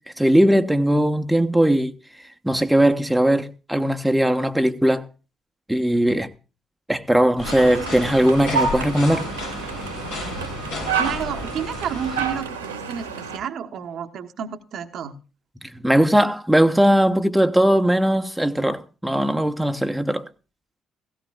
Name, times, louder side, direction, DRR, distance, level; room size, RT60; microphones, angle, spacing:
voice 1, 0.2-1.9 2.4-5.1 5.7-6.3 6.9-9.3 15.7-20.3, right 1 dB, 5° right, 1.1 m, -19 dB
sound 1, 7.4-12.5, left 2 dB, 80° left, 4.7 m, -33 dB
sound 2, 7.4-13.4, right 5 dB, 90° right, 1.8 m, -29 dB
voice 2, 11.0-15.1, right 8 dB, 60° right, 1.2 m, -31 dB
16.5 x 16.5 x 2.4 m
figure-of-eight pair, 45°, 0 cm